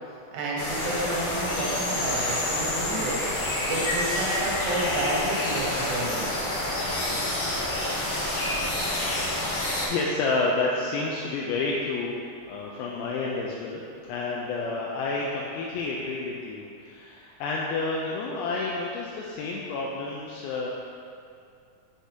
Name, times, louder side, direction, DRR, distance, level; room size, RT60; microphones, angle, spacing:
voice 1, 0.3-3.2 3.7-6.3, right 2 dB, 85° right, -4 dB, 2.9 m, -30 dB
sound 1, 0.6-9.9, left 1 dB, 70° left, 1.3 m, -28 dB
voice 2, 9.9-12.1 12.4-13.8 14.1-20.7, left 3 dB, 90° left, -3 dB, 2.4 m, -29 dB
6.7 x 6.3 x 2.8 m, 2.4 s
omnidirectional pair, 4.1 m